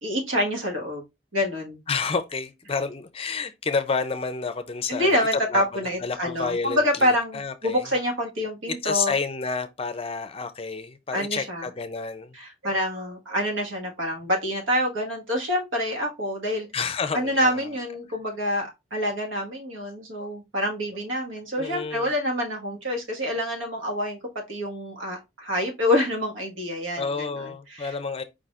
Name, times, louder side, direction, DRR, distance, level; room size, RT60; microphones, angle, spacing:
voice 1, 0.0-1.0 1.3-1.8 4.9-9.1 11.1-11.7 12.3-16.7 17.1-24.2 24.5-27.9, equal, 85° right, 1.6 m, -27 dB
voice 2, 1.9-7.8 8.7-12.4 16.7-17.7 21.6-22.1 27.0-28.2, left 4 dB, 30° left, 0.5 m, -30 dB
4.8 x 4.1 x 2.4 m
head